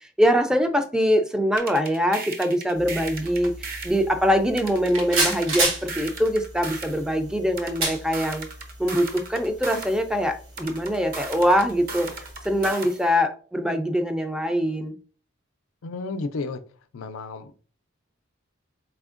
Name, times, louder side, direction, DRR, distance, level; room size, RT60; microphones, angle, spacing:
voice 1, 0.0-8.5 8.8-12.1 12.4-14.9, equal, 5° right, 7 dB, 0.3 m, -23 dB
sound 1, 1.6-4.0 4.6-7.0 7.6-10.0 10.6-13.0, right 4 dB, 45° right, 0.7 m, -36 dB
sound 2, 2.7-12.7, right 2 dB, 80° right, 1.3 m, -33 dB
voice 2, 15.8-16.6 16.9-17.5, left 3 dB, 80° left, 11 dB, 0.4 m, -32 dB
4.3 x 3.4 x 2.4 m, 0.41 s
head